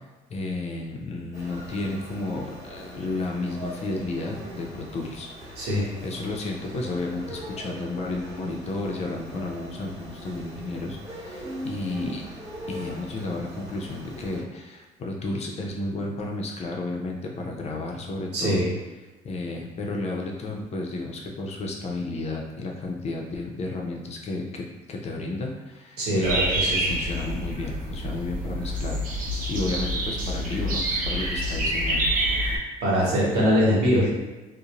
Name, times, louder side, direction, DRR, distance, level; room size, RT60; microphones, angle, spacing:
voice 1, 0.3-12.2 12.7-18.6 19.2-26.4 26.7-32.0, left 2 dB, 40° left, 0 dB, 0.5 m, -32 dB
sound 1, 1.3-14.4, equal, 20° right, 0.9 m, -41 dB
voice 2, 5.6-5.9 18.3-18.7 26.0-26.8 32.8-34.1, equal, 80° right, -5 dB, 1.0 m, -22 dB
sound 2, 26.2-32.6, right 1 dB, 55° right, 0.7 m, -27 dB
2.6 x 2.0 x 2.9 m, 1.2 s
cardioid pair, 110°, 17 cm